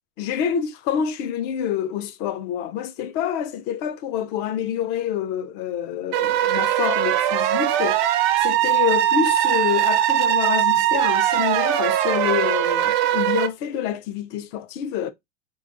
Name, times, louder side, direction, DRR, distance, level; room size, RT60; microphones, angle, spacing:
voice 1, 0.2-8.0 8.4-15.1, left 9 dB, 35° left, 0.4 m, -27 dB
sound 1, 6.1-13.5, right 12 dB, 50° right, 0.5 m, -20 dB
4.4 x 2.3 x 2.5 m
supercardioid pair, 145°, 31 cm